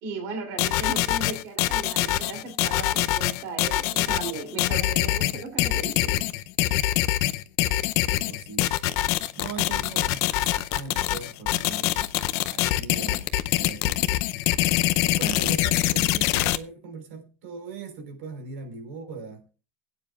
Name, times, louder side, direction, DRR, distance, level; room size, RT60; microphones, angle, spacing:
voice 1, 0.0-6.2, right 3 dB, 45° right, 3.3 m, -36 dB
sound 1, 0.6-16.6, left 15 dB, 45° left, 0.6 m, -24 dB
voice 2, 8.1-8.7 9.4-14.1 15.0-19.5, right 5 dB, 75° right, 3.8 m, -40 dB
20.0 x 9.3 x 2.4 m
cardioid pair, 180°, 7 cm